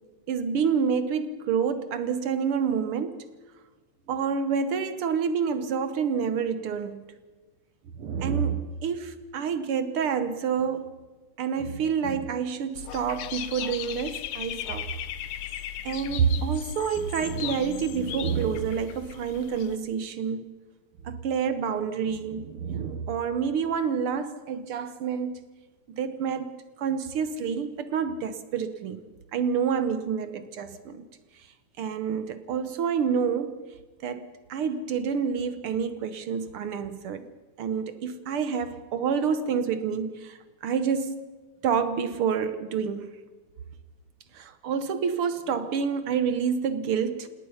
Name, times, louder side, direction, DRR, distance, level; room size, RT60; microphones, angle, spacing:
voice 1, 0.3-3.3 4.1-7.0 8.0-10.9 11.4-14.9 15.2-15.4 15.8-20.5 21.0-25.4 25.9-29.0 29.3-31.1 31.8-33.6 34.0-37.3 37.6-40.4 40.6-41.3 41.6-43.1 44.3-47.3, right 6 dB, 65° right, 1.4 m, -28 dB
Dog / Bird, 12.8-19.8, left 12 dB, 85° left, 2.5 m, -37 dB
28.0 x 18.0 x 5.7 m
omnidirectional pair, 3.5 m